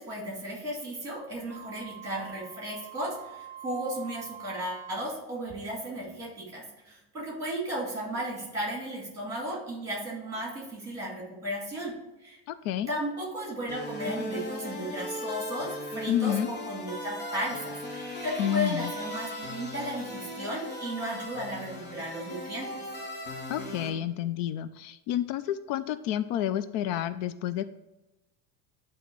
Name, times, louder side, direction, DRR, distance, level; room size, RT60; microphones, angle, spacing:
voice 1, 0.0-11.9 12.2-12.4 12.9-22.8, equal, 5° right, -3 dB, 2.1 m, -35 dB
Wind instrument woodwind instrument, 1.5-5.2, right 10 dB, 25° right, 1.0 m, -45 dB
voice 2, 12.5-12.9 16.1-16.5 18.4-18.9 23.5-27.7, left 11 dB, 80° left, 13 dB, 0.5 m, -29 dB
sound 1, 13.7-23.9, left 1 dB, 60° left, 1.8 m, -37 dB
9.2 x 3.1 x 4.6 m, 0.97 s
cardioid pair, 175°, 45 cm